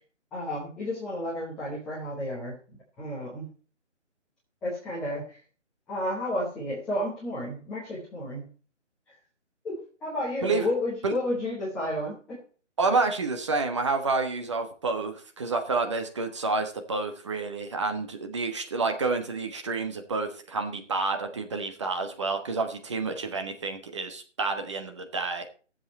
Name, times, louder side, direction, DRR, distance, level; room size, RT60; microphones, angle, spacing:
voice 1, 0.3-2.6 3.0-3.5 4.6-5.4 5.9-8.5 9.6-12.4, left 1 dB, ahead, -9 dB, 1.0 m, -32 dB
voice 2, 12.8-25.5, right 3 dB, 25° right, 6 dB, 1.2 m, -29 dB
14.0 x 7.8 x 4.3 m, 0.39 s
figure-of-eight pair, 150°, 37 cm